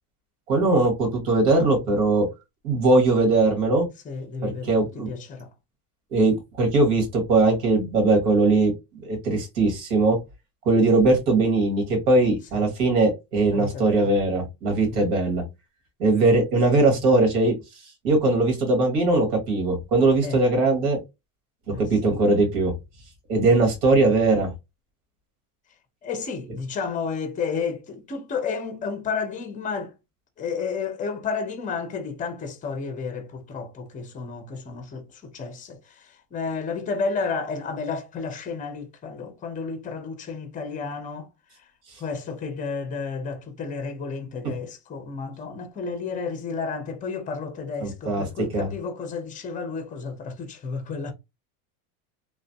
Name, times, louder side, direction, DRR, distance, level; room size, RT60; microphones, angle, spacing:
voice 1, 0.5-2.3 2.6-3.9 4.4-5.1 6.1-8.7 9.0-10.2 10.6-15.4 16.0-17.5 18.0-21.0 21.8-22.7 23.3-24.5 47.8-48.2 48.5-48.7, right 2 dB, 75° right, 1.7 m, -20 dB
voice 2, 4.0-5.5 12.5-12.7 13.5-14.1 14.9-15.1 20.2-20.5 21.7-22.2 26.0-29.9 30.4-41.3 42.0-51.1, left 5 dB, 20° left, 0.6 m, -32 dB
3.1 x 2.1 x 2.7 m
supercardioid pair, 120°, 45 cm